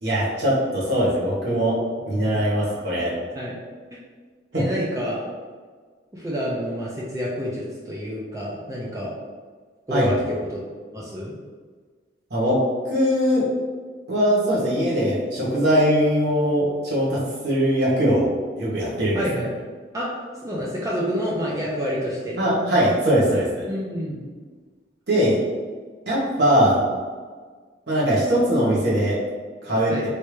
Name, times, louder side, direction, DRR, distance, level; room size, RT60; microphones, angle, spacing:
voice 1, 0.0-1.8 2.1-3.1 4.5-4.6 9.9-10.1 12.3-12.6 12.9-13.5 14.1-18.3 18.6-19.2 22.4-23.6 25.1-25.4 26.1-26.8 27.9-29.2 29.6-29.9, equal, 65° right, -7 dB, 1.1 m, -21 dB
voice 2, 4.5-5.2 6.1-9.1 9.9-10.6 10.9-11.3 19.1-19.5 19.9-20.1 20.4-22.4 23.7-24.3 29.9-30.0, equal, 15° right, -5 dB, 0.4 m, -28 dB
3.3 x 2.7 x 3.1 m, 1.5 s
head